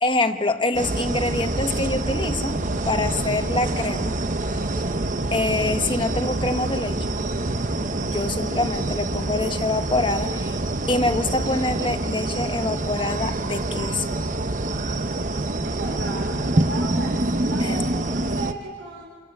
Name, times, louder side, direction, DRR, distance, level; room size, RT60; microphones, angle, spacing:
voice 1, 0.0-2.6 2.8-4.1 5.3-7.0 8.1-10.6 10.9-14.1 17.6-17.7, left 2 dB, 25° left, 7 dB, 1.3 m, -25 dB
sound 1, 0.7-18.5, right 2 dB, 40° right, 1.0 m, -26 dB
voice 2, 15.6-19.1, right 2 dB, 65° right, -1 dB, 4.5 m, -35 dB
27.5 x 26.5 x 7.9 m, 1.5 s
head